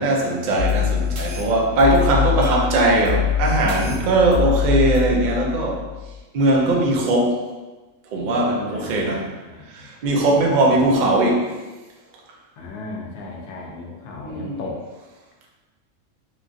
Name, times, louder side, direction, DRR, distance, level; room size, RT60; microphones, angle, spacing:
voice 1, 0.0-5.9 6.3-7.5 8.1-9.3 9.7-11.6 14.2-14.6, right 2 dB, 60° right, -1 dB, 0.4 m, -20 dB
sound 1, 0.6-6.2, left 8 dB, 90° right, 1.0 m, -24 dB
voice 2, 8.7-9.9 10.7-10.8 12.6-14.9, left 3 dB, 70° left, 0 dB, 0.9 m, -36 dB
3.0 x 2.4 x 2.5 m, 1.2 s
omnidirectional pair, 1.3 m